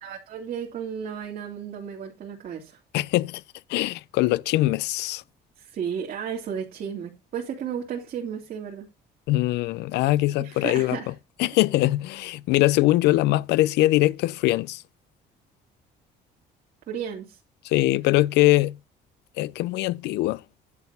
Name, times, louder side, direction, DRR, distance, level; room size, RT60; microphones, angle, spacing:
voice 1, 0.0-2.8 5.6-8.9 10.4-11.1 16.9-17.4, right 8 dB, 60° right, 2.8 m, -33 dB
voice 2, 2.9-3.4 3.7-5.2 9.3-11.0 11.4-14.8 17.6-18.8 19.4-20.4, left 17 dB, 85° left, 0.5 m, -22 dB
11.0 x 4.3 x 6.9 m
cardioid pair, 110°, 17 cm